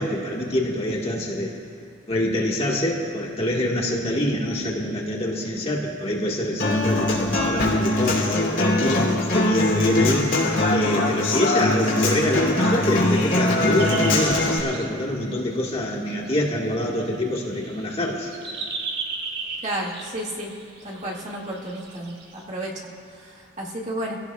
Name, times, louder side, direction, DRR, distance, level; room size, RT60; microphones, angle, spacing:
voice 1, 0.0-1.5 2.1-10.3 10.7-18.3, left 1 dB, 30° left, -2 dB, 1.6 m, -25 dB
Human voice / Acoustic guitar, 6.6-14.6, left 2 dB, 65° left, 2.9 m, -22 dB
sound 1, 13.8-14.9 15.3-15.4 15.6-22.4, right 4 dB, 55° right, 1.8 m, -36 dB
voice 2, 19.6-20.5 20.8-24.2, right 1 dB, 35° right, -4 dB, 2.0 m, -32 dB
26.5 x 16.5 x 2.3 m, 2.2 s
head